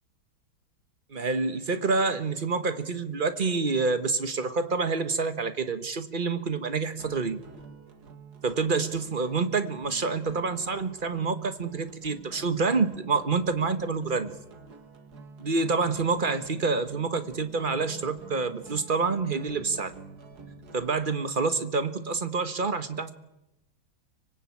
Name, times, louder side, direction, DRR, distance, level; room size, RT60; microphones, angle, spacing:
voice 1, 1.1-7.4 8.4-14.4 15.4-19.9 20.7-23.1, right 4 dB, 30° right, 10 dB, 1.2 m, -27 dB
sound 1, 7.0-21.1, right 4 dB, 50° right, 2.2 m, -48 dB
25.0 x 21.5 x 8.6 m, 0.91 s
omnidirectional pair, 2.2 m